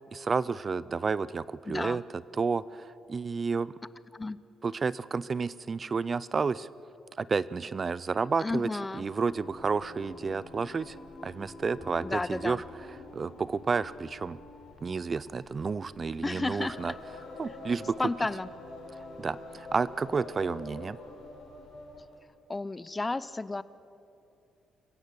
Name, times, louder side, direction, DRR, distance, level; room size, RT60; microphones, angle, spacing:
voice 1, 0.1-2.0 2.4-3.7 4.6-6.7 7.2-11.0 11.2-12.6 13.1-14.4 14.8-16.9 17.4-18.0 18.9-21.0, right 5 dB, 35° right, 18 dB, 0.5 m, -31 dB
voice 2, 1.7-2.0 4.1-4.4 8.4-9.0 12.0-12.6 16.2-16.8 18.0-18.5 22.5-23.6, left 2 dB, 20° left, 17 dB, 0.6 m, -32 dB
Singing, 8.9-22.1, left 2 dB, 80° left, 4.8 m, -47 dB
Bowed string instrument, 11.8-18.1, left 1 dB, 45° left, 3.9 m, -58 dB
25.5 x 15.5 x 8.1 m, 2.7 s
cardioid pair, 90°, 0 cm